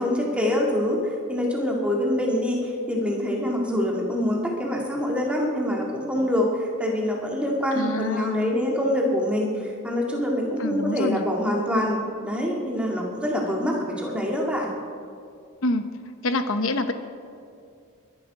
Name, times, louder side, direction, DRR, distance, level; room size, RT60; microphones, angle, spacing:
voice 1, 0.0-14.7, left 1 dB, 5° right, -1 dB, 2.0 m, -25 dB
voice 2, 7.7-8.5 10.6-11.3 15.6-15.9 16.2-16.9, left 2 dB, 65° left, 9 dB, 1.0 m, -26 dB
22.0 x 11.5 x 4.9 m, 2.4 s
head